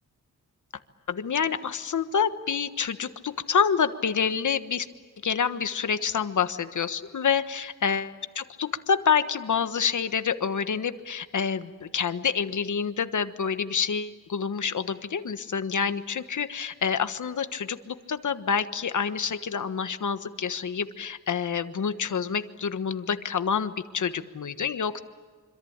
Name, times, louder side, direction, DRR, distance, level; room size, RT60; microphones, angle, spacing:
voice 1, 1.1-4.9 5.2-25.0, left 6 dB, 70° left, 10 dB, 1.4 m, -27 dB
26.0 x 26.0 x 8.8 m, 1.5 s
wide cardioid pair, 150°, 31 cm